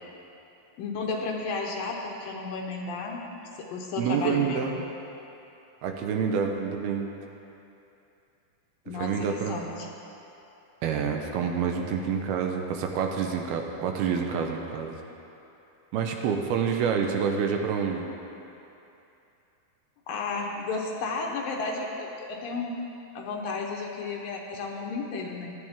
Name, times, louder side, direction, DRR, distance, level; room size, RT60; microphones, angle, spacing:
voice 1, 0.8-3.2 3.6-4.6 8.9-9.9 20.1-22.8 23.2-25.5, left 4 dB, 70° left, 0 dB, 2.5 m, -33 dB
voice 2, 4.0-4.8 5.8-7.1 8.9-9.6 10.8-15.0 15.9-18.1, right 6 dB, 80° right, 3 dB, 2.8 m, -27 dB
18.0 x 13.0 x 3.6 m, 2.8 s
omnidirectional pair, 4.6 m